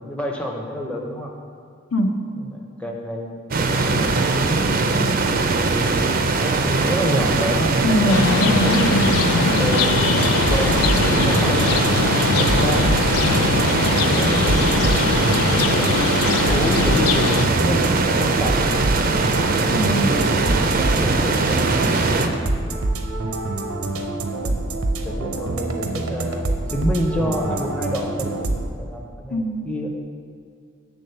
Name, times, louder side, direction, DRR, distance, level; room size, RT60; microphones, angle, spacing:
voice 1, 0.0-1.3 2.4-5.2 6.6-8.1 8.6-8.7 9.5-12.0 12.4-13.2 14.1-18.9 19.9-22.5 23.9-24.7 25.0-29.9, equal, 5° left, -1 dB, 0.6 m, -29 dB
voice 2, 1.9-2.3 7.8-9.6 19.7-20.1 29.3-29.7, equal, 65° left, 2 dB, 0.8 m, -22 dB
sound 1, 3.5-22.3, right 3 dB, 40° right, 0.4 m, -21 dB
sound 2, 8.1-17.5, left 7 dB, 90° left, 0.3 m, -22 dB
sound 3, 10.2-28.7, right 2 dB, 80° right, 0.7 m, -26 dB
8.2 x 3.8 x 6.6 m, 2.3 s
head